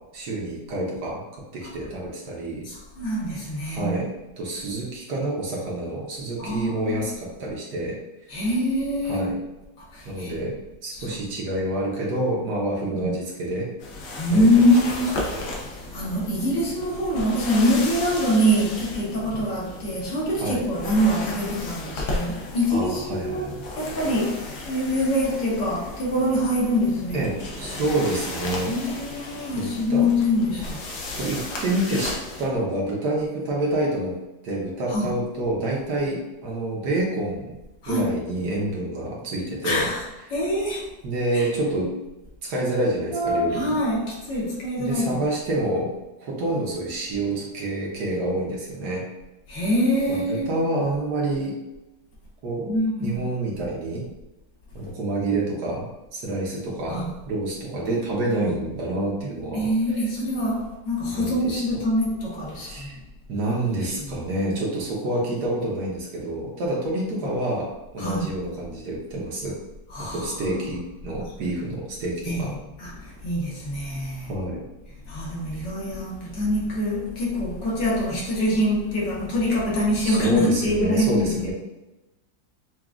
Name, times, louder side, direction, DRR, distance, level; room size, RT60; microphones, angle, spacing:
voice 1, 0.1-1.2 1.5-2.6 3.6-4.1 4.4-8.0 9.0-9.4 10.0-13.7 14.3-14.5 15.2-15.4 20.4-20.6 22.7-23.6 27.1-27.3 27.6-28.7 29.5-30.1 31.2-34.2 34.4-37.5 37.9-39.9 41.0-41.9 42.4-43.8 44.8-45.9 46.2-49.0 50.1-51.5 52.4-52.7 53.0-54.0 54.7-55.9 56.1-59.7 61.1-61.8 62.6-63.0 63.3-69.6 70.0-72.5 74.2-74.6 80.0-81.5, right 1 dB, 65° right, -4 dB, 1.3 m, -28 dB
voice 2, 2.6-4.0 6.4-7.0 8.3-9.4 9.9-10.3 10.9-11.2 12.8-13.1 14.1-15.2 15.7-27.2 28.7-30.8 34.9-35.2 37.8-38.1 39.6-40.0 40.3-40.9 41.3-41.5 43.1-45.2 49.5-50.5 52.6-53.3 56.9-57.1 59.5-63.0 63.4-63.5 63.8-64.2 68.0-68.3 69.9-70.6 72.2-74.3 75.0-81.5, equal, 70° left, -5 dB, 1.7 m, -24 dB
sound 1, 13.8-32.5, left 2 dB, 85° left, 1.5 m, -35 dB
5.9 x 2.3 x 2.4 m, 1.0 s
omnidirectional pair, 2.1 m